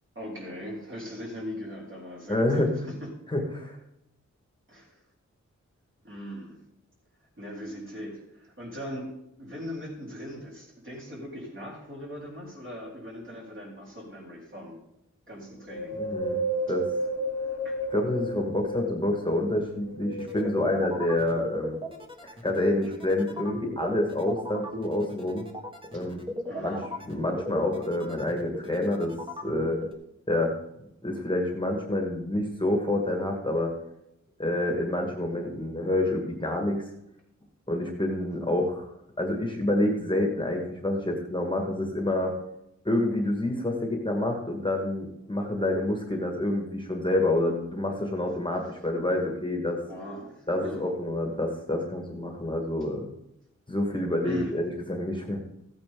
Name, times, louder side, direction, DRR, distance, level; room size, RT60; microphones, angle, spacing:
voice 1, 0.2-3.1 4.7-5.0 6.0-6.6 7.4-9.1 9.4-14.8 15.3-16.0 17.6-17.8 25.9-26.0 26.5-26.9 49.9-50.9 54.2-54.6, equal, 40° right, -3 dB, 3.9 m, -40 dB
voice 2, 2.3-2.8 3.3-3.8 16.0-16.4 16.7-16.9 17.9-21.8 22.2-25.5 25.9-26.2 26.6-26.7 27.1-29.1 29.4-29.8 30.3-30.5 31.0-33.7 34.4-36.9 37.7-38.9 39.2-42.3 42.8-49.8 50.5-53.1 53.7-55.4, left 1 dB, 15° left, 2 dB, 1.6 m, -28 dB
Wind, 15.7-19.3 19.8-21.0 21.6-21.7, right 1 dB, 65° left, 1.2 m, -32 dB
sound 1, 20.1-29.9, left 1 dB, 15° right, 1.6 m, -36 dB
15.0 x 8.8 x 3.7 m, 0.83 s
wide cardioid pair, 125°, 29 cm